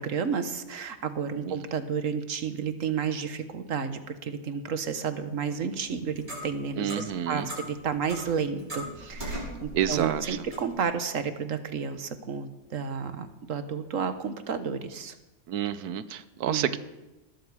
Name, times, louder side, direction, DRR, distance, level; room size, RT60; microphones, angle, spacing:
voice 1, 0.0-15.1 16.4-16.8, right 6 dB, 60° right, 10 dB, 1.5 m, -31 dB
Clock, 5.7-10.8, equal, 30° right, 6.2 m, -40 dB
voice 2, 6.8-7.5 9.7-10.5 15.5-16.8, right 9 dB, 85° right, 14 dB, 1.3 m, -29 dB
19.5 x 13.0 x 4.9 m, 1.0 s
omnidirectional pair, 1.6 m